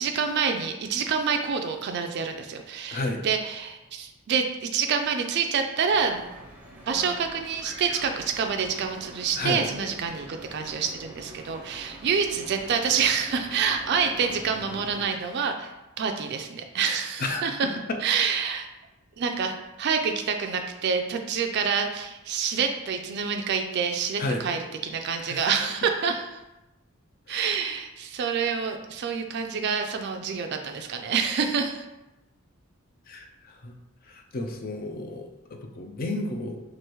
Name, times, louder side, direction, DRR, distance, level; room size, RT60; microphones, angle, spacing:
voice 1, 0.0-6.2 6.9-17.7 18.0-18.7 19.2-26.4 27.3-31.8, right 6 dB, 50° right, 5 dB, 0.3 m, -27 dB
sound 1, 5.9-15.1, right 1 dB, 10° right, 0.6 m, -44 dB
voice 2, 33.1-33.7 34.1-36.6, left 2 dB, 45° left, 4 dB, 0.4 m, -32 dB
4.7 x 2.5 x 3.0 m, 0.97 s
head